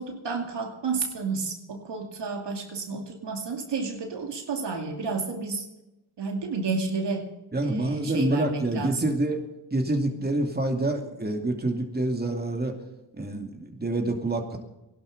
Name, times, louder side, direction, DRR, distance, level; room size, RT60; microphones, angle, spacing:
voice 1, 0.0-5.7 6.2-7.3 7.6-9.1, right 4 dB, 65° right, 3 dB, 2.6 m, -31 dB
voice 2, 7.5-9.4 9.7-12.8 13.2-14.6, right 2 dB, 20° right, 3 dB, 2.6 m, -27 dB
16.0 x 12.0 x 6.6 m, 0.94 s
cardioid pair, 55°, 46 cm